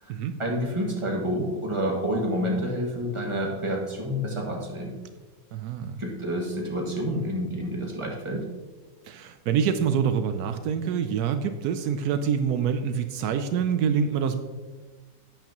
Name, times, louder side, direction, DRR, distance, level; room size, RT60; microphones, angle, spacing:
voice 1, 0.4-5.0 6.0-8.5, equal, 20° right, -2 dB, 1.7 m, -28 dB
voice 2, 5.5-6.0 9.0-14.4, right 7 dB, 80° right, 9 dB, 1.1 m, -26 dB
11.5 x 8.9 x 2.9 m, 1.3 s
omnidirectional pair, 1.7 m